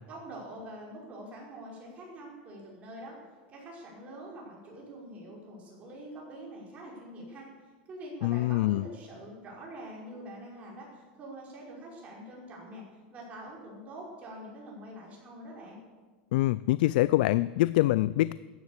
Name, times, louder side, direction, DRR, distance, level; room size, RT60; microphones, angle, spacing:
voice 1, 0.1-3.2 3.5-7.5 7.9-12.8 13.1-15.8, right 1 dB, 25° right, -2 dB, 5.2 m, -45 dB
voice 2, 8.2-8.8 16.3-18.3, left 17 dB, 70° left, 18 dB, 0.4 m, -25 dB
14.5 x 10.5 x 8.3 m, 1.4 s
supercardioid pair, 155°, 5 cm